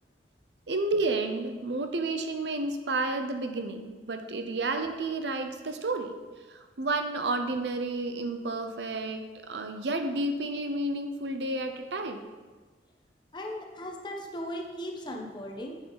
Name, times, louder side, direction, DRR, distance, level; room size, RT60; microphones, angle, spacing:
voice 1, 0.7-6.1 6.5-12.3, right 2 dB, 75° right, 6 dB, 0.7 m, -31 dB
voice 2, 13.3-15.8, equal, 25° left, 1 dB, 1.0 m, -37 dB
8.2 x 6.6 x 4.0 m, 1.4 s
head